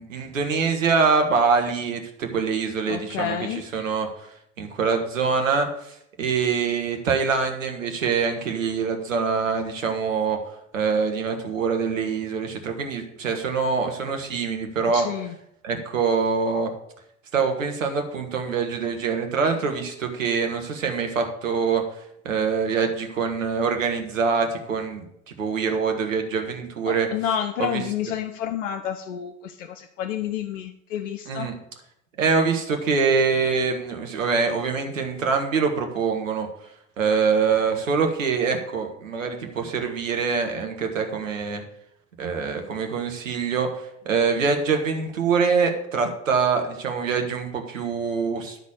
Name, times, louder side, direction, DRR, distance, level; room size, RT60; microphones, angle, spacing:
voice 1, 0.0-4.1 4.6-10.4 10.7-15.1 15.6-16.7 17.3-21.8 22.2-25.0 25.4-27.1 27.6-27.8 31.3-31.5 32.2-36.5 37.0-41.6 42.2-43.7 44.0-48.6, right 5 dB, 80° right, 4 dB, 1.4 m, -24 dB
voice 2, 2.9-3.7 14.9-15.4 26.9-31.5, left 9 dB, 75° left, 7 dB, 0.7 m, -29 dB
12.0 x 4.2 x 7.0 m, 0.78 s
figure-of-eight pair, 60°, 38 cm